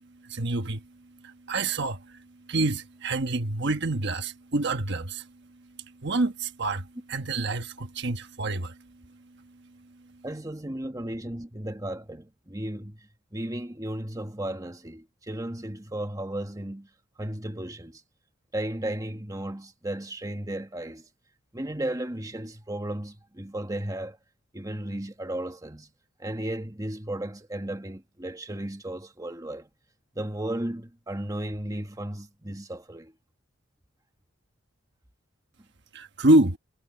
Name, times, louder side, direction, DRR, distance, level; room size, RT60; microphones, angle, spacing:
voice 1, 0.3-0.8 1.2-2.2 2.5-5.3 6.0-8.7 35.9-36.6, right 2 dB, 55° right, 1.3 m, -26 dB
voice 2, 10.2-13.0 13.3-16.9 17.2-18.0 18.5-21.0 21.5-24.2 24.5-25.9 26.2-29.7 30.1-33.1, right 1 dB, 15° right, 1.5 m, -34 dB
head